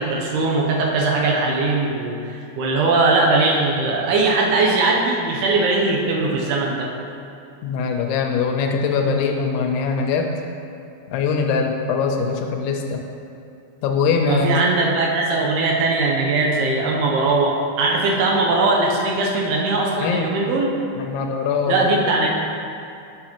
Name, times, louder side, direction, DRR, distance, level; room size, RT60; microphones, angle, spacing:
voice 1, 0.0-6.9 14.3-20.7 21.7-22.3, right 3 dB, 80° right, -1 dB, 2.5 m, -20 dB
voice 2, 7.6-10.4 11.1-13.0 13.8-14.6 20.0-20.3 20.9-21.9, left 5 dB, 85° left, 3 dB, 2.5 m, -22 dB
7.7 x 6.4 x 2.9 m, 2.6 s
omnidirectional pair, 4.7 m